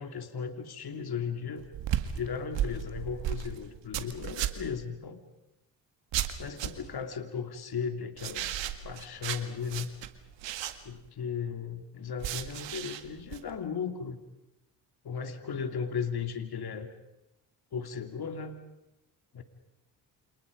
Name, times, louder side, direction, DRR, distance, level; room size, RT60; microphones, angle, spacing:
voice 1, 0.0-1.6 2.1-5.2 6.4-8.5 8.8-9.9 10.8-14.2 15.0-16.9 17.7-18.6 19.3-19.4, left 6 dB, 55° left, 7 dB, 2.9 m, -36 dB
sound 1, 1.6-4.8 6.1-7.0 8.2-11.1 12.2-13.4, right 11 dB, 75° right, 2.1 m, -35 dB
29.5 x 28.0 x 5.2 m, 0.93 s
supercardioid pair, 60°, 44 cm